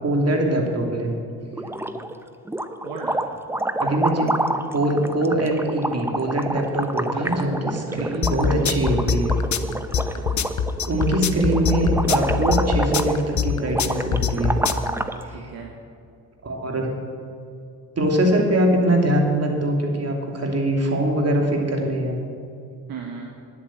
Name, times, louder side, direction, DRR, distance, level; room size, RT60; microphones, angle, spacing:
voice 1, 0.0-1.1 3.8-4.3 4.7-9.3 10.9-14.6 15.2-15.5 16.4-16.9 18.0-22.2, right 1 dB, 40° right, 1 dB, 2.7 m, -22 dB
sound 1, 1.5-2.2 2.5-15.2, right 1 dB, 5° right, 0.7 m, -28 dB
voice 2, 2.8-3.2 7.1-7.5 7.9-9.1 9.9-10.4 15.3-15.7 22.9-23.3, right 6 dB, 65° right, 1 dB, 1.4 m, -37 dB
sound 2, 8.2-14.9, left 7 dB, 50° left, 0.8 m, -23 dB
10.0 x 8.4 x 7.6 m, 2.4 s
supercardioid pair, 60°, 38 cm